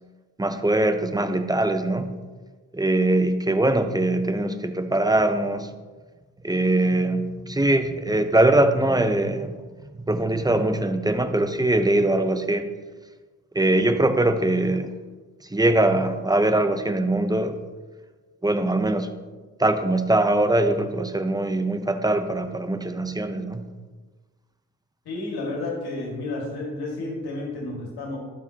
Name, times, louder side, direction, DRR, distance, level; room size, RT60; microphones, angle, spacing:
voice 1, 0.4-2.1 2.7-5.7 6.4-9.6 9.9-12.7 13.5-14.9 15.5-17.6 18.4-19.1 19.6-23.6, right 1 dB, 10° right, 8 dB, 0.8 m, -22 dB
voice 2, 25.1-28.2, left 2 dB, 80° left, -1 dB, 2.2 m, -31 dB
12.0 x 4.9 x 2.9 m, 1.3 s
supercardioid pair, 50°, 38 cm